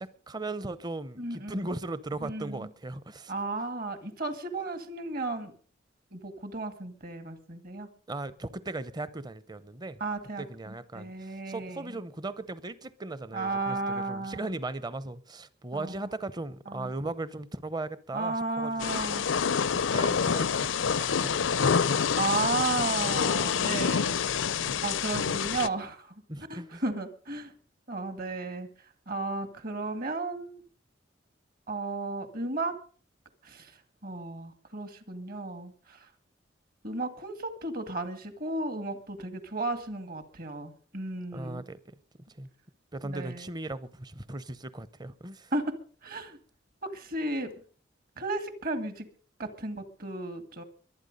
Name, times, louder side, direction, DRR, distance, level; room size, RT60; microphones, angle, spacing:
voice 1, 0.0-3.3 8.1-10.0 10.4-19.1 19.7-21.7 24.6-24.8 26.3-26.8 41.3-41.9 42.3-42.5 42.9-45.5, right 2 dB, 20° right, 0.8 m, -38 dB
voice 2, 1.2-1.7 2.2-2.7 3.3-5.5 6.1-7.9 10.0-12.0 13.3-14.5 15.7-16.1 16.7-16.9 18.1-19.3 22.2-26.1 26.5-27.5 27.9-28.7 29.1-30.6 31.7-32.8 33.4-33.7 34.0-36.1 36.8-41.6 43.0-43.5 45.5-45.6 46.0-46.4 46.8-47.5 48.2-49.1 49.4-50.6, right 2 dB, 50° right, 2.1 m, -34 dB
Thunder / Rain, 18.8-25.7, left 6 dB, 85° left, 0.6 m, -27 dB
23.0 x 9.1 x 5.3 m
head